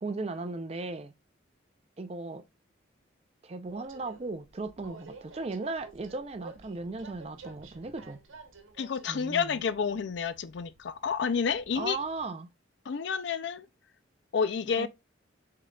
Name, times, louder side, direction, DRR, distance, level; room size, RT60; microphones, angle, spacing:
voice 1, 0.0-1.1 2.0-2.4 3.4-8.2 9.1-9.6 11.7-12.5 14.8-14.9, right 3 dB, 30° right, 0.4 m, -36 dB
Train, 3.6-12.3, right 3 dB, 90° right, 0.9 m, -52 dB
voice 2, 8.8-12.0 12.9-13.7 14.3-14.9, left 6 dB, 60° left, 0.4 m, -30 dB
5.4 x 3.7 x 2.3 m
head